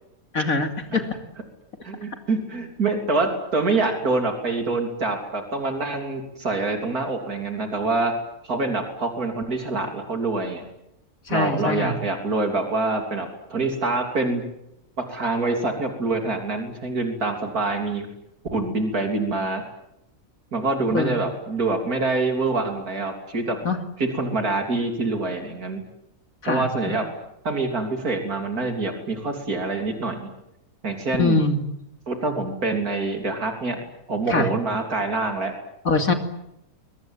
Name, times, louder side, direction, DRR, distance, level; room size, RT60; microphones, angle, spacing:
voice 1, 0.3-1.1 11.3-11.9 20.9-21.2 23.6-23.8 26.4-26.7 31.2-31.6 34.3-34.5 35.8-36.1, left 3 dB, 65° left, 7 dB, 3.2 m, -22 dB
voice 2, 1.8-8.2 8.4-10.6 11.3-14.4 15.0-18.1 18.5-19.6 20.5-23.6 24.0-25.8 26.5-27.1 27.4-30.3 30.8-31.4 32.1-33.8 34.1-35.5, right 3 dB, 80° right, 4 dB, 3.8 m, -25 dB
24.0 x 23.0 x 9.1 m, 0.82 s
omnidirectional pair, 1.6 m